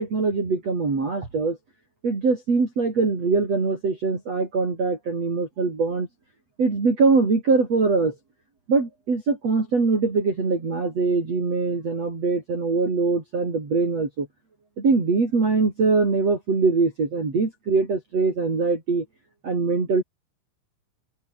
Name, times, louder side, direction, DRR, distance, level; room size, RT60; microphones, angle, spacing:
voice 1, 0.0-1.6 2.0-6.1 6.6-8.1 8.7-14.3 14.8-19.0 19.4-20.0, right 4 dB, 30° right, 6.1 m, -22 dB
omnidirectional pair, 5.8 m